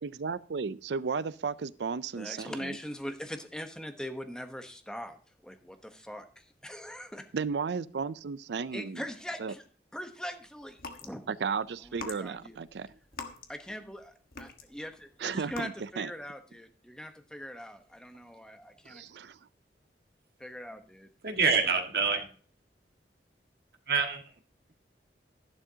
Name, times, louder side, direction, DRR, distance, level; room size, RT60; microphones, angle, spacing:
voice 1, 0.0-2.8 7.3-9.0 9.4-9.5 11.3-12.9 15.2-16.1 18.9-19.4, right 5 dB, 75° right, 0.5 m, -34 dB
voice 2, 2.1-5.2 5.4-7.2 8.7-9.6 9.9-11.3 11.8-12.6 13.5-19.0 20.4-21.1, equal, 5° left, 1.0 m, -41 dB
sound 1, 10.7-11.1 11.8-14.0 14.3-14.9 15.4-15.6, left 4 dB, 55° left, 1.4 m, -43 dB
voice 3, 21.2-22.3 23.9-24.2, right 5 dB, 60° right, 1.8 m, -26 dB
12.5 x 11.0 x 2.8 m
head